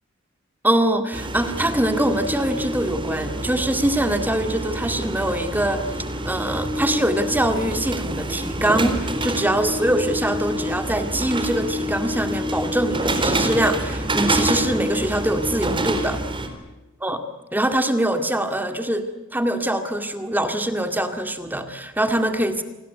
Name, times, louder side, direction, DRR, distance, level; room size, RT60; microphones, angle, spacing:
voice 1, 0.6-5.8 6.3-16.2 17.0-17.2 17.5-22.6, right 1 dB, 10° right, 7 dB, 2.1 m, -23 dB
sound 1, 1.1-16.5, right 1 dB, 25° right, 4.0 m, -27 dB
29.0 x 21.0 x 8.1 m, 1.1 s
head